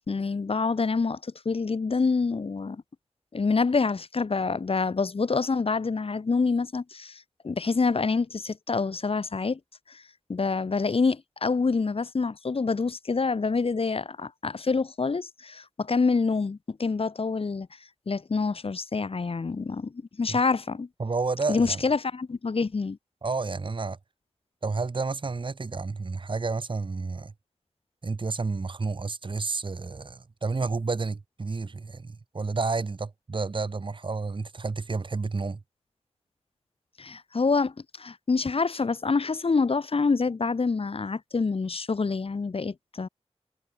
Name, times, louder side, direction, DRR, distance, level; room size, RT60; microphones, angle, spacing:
voice 1, 0.1-2.8 3.3-9.6 9.9-10.0 10.3-17.7 18.1-20.9 21.5-23.0 37.0-43.1, left 4 dB, 55° left, 1.5 m, -27 dB
voice 2, 21.0-21.8 23.2-24.0 24.6-27.3 28.0-35.6, right 4 dB, 45° right, 1.3 m, -30 dB
wide cardioid pair, 70°, 11 cm